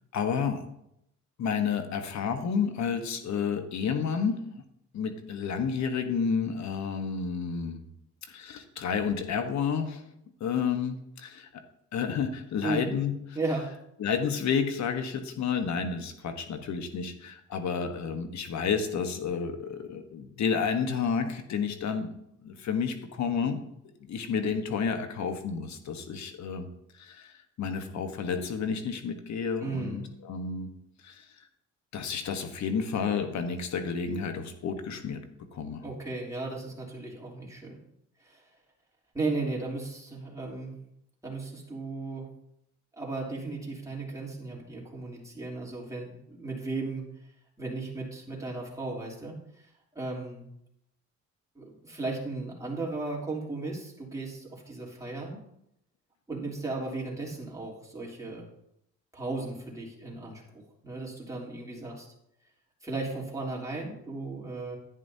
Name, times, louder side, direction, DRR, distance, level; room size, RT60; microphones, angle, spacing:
voice 1, 0.1-0.6 1.4-4.4 4.9-7.8 8.3-10.0 10.4-11.6 11.9-13.1 14.0-22.1 22.4-23.6 24.0-26.7 26.9-30.7 31.0-31.3 31.9-35.2 35.5-35.8, left 6 dB, 65° left, 7 dB, 1.3 m, -30 dB
voice 2, 13.3-13.7 29.6-30.0 35.8-37.8 38.2-38.4 39.1-40.7 41.2-42.3 42.9-47.1 47.6-49.4 49.9-50.5 51.5-55.4 56.3-58.4 59.1-62.1 62.8-64.8, right 3 dB, 10° right, -4 dB, 3.2 m, -35 dB
11.0 x 9.7 x 2.8 m, 0.78 s
cardioid pair, 90°, 30 cm